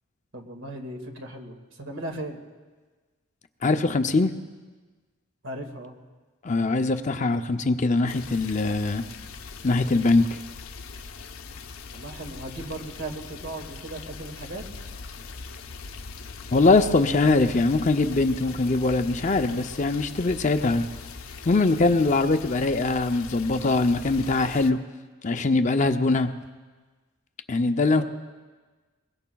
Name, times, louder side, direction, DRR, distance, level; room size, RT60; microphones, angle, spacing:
voice 1, 0.3-2.4 5.4-6.0 11.9-14.6 28.0-28.1, right 1 dB, 65° right, 2 dB, 2.0 m, -37 dB
voice 2, 3.6-4.3 6.4-9.0 9.6-10.4 16.5-20.8 21.5-24.8 25.2-26.3 27.5-28.0, left 3 dB, 35° left, 7 dB, 0.5 m, -22 dB
sound 1, 8.1-24.7, left 4 dB, 85° left, 0.8 m, -41 dB
22.0 x 22.0 x 2.3 m, 1.4 s
head